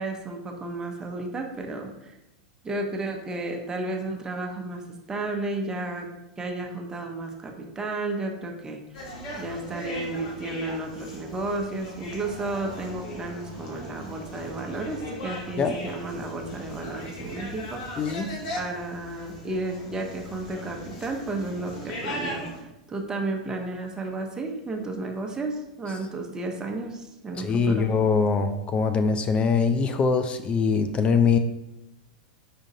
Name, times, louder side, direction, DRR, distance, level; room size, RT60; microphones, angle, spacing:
voice 1, 0.0-2.1 2.6-6.1 6.4-9.0 9.4-17.8 18.5-22.4 22.9-28.0, right 2 dB, 15° right, 1 dB, 0.8 m, -32 dB
sound 1, 8.9-22.6, equal, 55° left, 1.3 m, -38 dB
voice 2, 18.0-18.3 27.4-31.4, left 5 dB, 25° left, 8 dB, 0.3 m, -23 dB
5.1 x 3.7 x 2.7 m, 0.94 s
hypercardioid pair, 100°, 4 cm